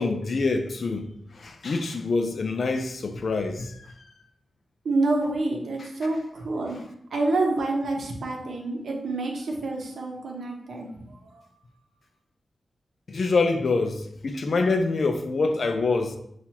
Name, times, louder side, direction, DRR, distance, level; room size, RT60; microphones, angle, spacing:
voice 1, 0.0-3.9 5.8-6.2 13.1-16.2, left 3 dB, 55° left, 0.4 m, -26 dB
voice 2, 4.8-6.2 6.4-6.8 7.1-10.9, right 2 dB, 85° right, 0.8 m, -27 dB
5.8 x 2.4 x 2.8 m
wide cardioid pair, 165°, 0 cm